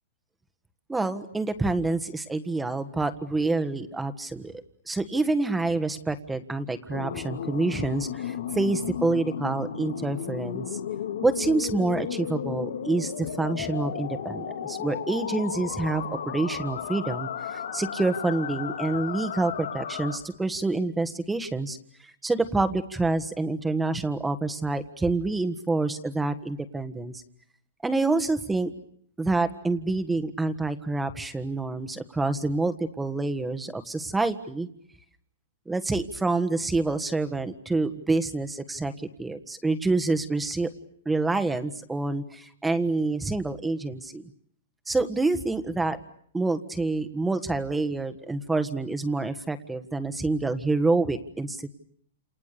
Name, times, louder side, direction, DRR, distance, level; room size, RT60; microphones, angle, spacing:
voice 1, 0.9-4.5 4.9-10.8 11.2-21.8 22.0-27.2 27.8-28.7 29.2-34.7 35.7-40.7 41.0-44.2 44.9-46.0 46.3-51.7, right 3 dB, 5° right, 9 dB, 1.6 m, -27 dB
sound 1, 6.9-20.2, left 8 dB, 85° left, 3.4 m, -34 dB
30.0 x 28.5 x 6.9 m, 0.65 s
hypercardioid pair, 150°, 0 cm